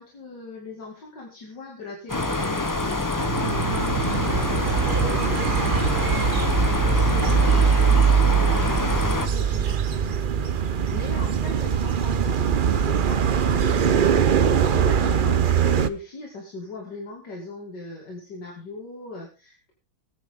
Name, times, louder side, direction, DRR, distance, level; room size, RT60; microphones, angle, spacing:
voice 1, 0.0-6.1 6.6-14.0 14.4-19.7, left 2 dB, 80° left, -1 dB, 3.2 m, -39 dB
sound 1, 2.1-9.3, left 2 dB, 15° left, 0.7 m, -26 dB
sound 2, 3.2-15.9, right 7 dB, 55° right, 0.6 m, -22 dB
20.5 x 9.7 x 3.7 m, 0.33 s
omnidirectional pair, 1.8 m